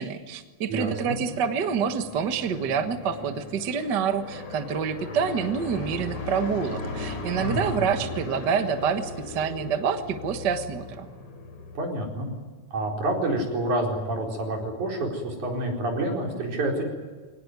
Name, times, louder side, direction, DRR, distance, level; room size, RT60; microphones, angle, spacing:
voice 1, 0.0-11.1, right 6 dB, 45° right, 8 dB, 1.5 m, -27 dB
voice 2, 0.7-1.2 7.4-7.8 11.7-12.3 12.7-16.8, right 1 dB, 80° right, 0 dB, 6.0 m, -28 dB
sound 1, 0.8-11.8, left 2 dB, 60° left, 4.3 m, -37 dB
23.0 x 19.0 x 9.5 m, 1.4 s
omnidirectional pair, 3.4 m